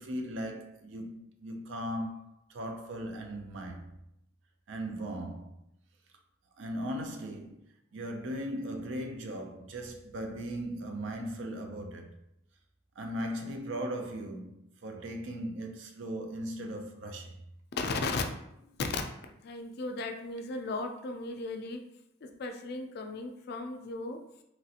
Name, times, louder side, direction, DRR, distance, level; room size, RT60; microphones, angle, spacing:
voice 1, 0.0-3.9 4.7-5.5 6.6-7.6 7.9-12.2 13.0-17.4, equal, 70° right, 0.4 m, -38 dB
voice 2, 17.7-18.2 18.6-18.9 19.1-21.8 22.2-24.2, left 3 dB, 55° left, 0.4 m, -36 dB
3.0 x 2.4 x 2.7 m
head